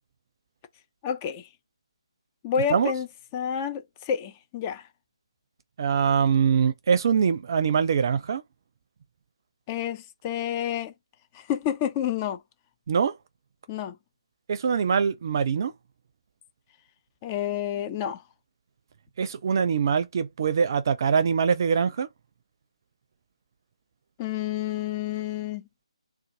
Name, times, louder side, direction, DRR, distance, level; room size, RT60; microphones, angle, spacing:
voice 1, 1.0-1.5 2.4-3.1 3.3-4.9 9.7-10.9 11.3-12.4 13.7-14.0 17.2-18.2 24.2-25.6, left 9 dB, 20° left, 0.4 m, -29 dB
voice 2, 5.8-8.4 12.9-13.2 14.5-15.7 19.2-22.1, right 6 dB, 40° right, 0.5 m, -23 dB
3.8 x 2.3 x 2.7 m
figure-of-eight pair, 150°, 3 cm